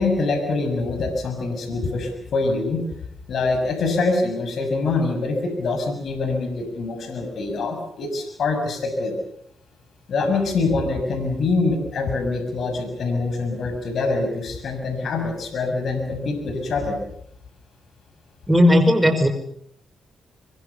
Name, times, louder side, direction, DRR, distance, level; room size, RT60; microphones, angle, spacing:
voice 1, 0.0-2.8 3.3-9.1 10.1-17.0, left 3 dB, 65° left, 7 dB, 6.5 m, -24 dB
voice 2, 18.5-19.3, left 1 dB, 5° right, 5 dB, 5.3 m, -15 dB
24.5 x 23.0 x 7.0 m, 0.67 s
supercardioid pair, 55°, 0 cm